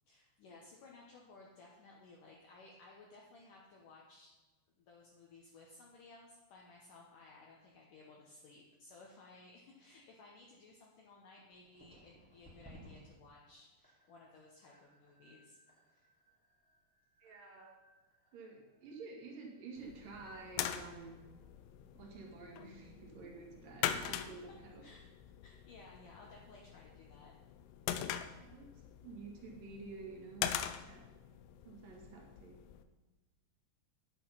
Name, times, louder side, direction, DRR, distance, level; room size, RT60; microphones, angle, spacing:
voice 1, 0.1-4.3 4.8-15.6 15.8-16.1 23.9-24.2 24.8-25.0 25.4-27.3, left 3 dB, 65° left, -2 dB, 2.2 m, -58 dB
sound 1, 11.5-22.4 22.6-23.0 23.4-24.4, equal, 5° left, 1.3 m, -64 dB
voice 2, 17.2-17.7 18.3-21.1 21.9-24.8 28.4-28.7 29.0-30.5 30.8-31.1 31.6-32.6, right 4 dB, 55° right, 0 dB, 3.3 m, -50 dB
sound 2, 19.8-32.8, left 11 dB, 90° left, 2.9 m, -43 dB
10.0 x 9.0 x 5.7 m, 1.2 s
omnidirectional pair, 5.0 m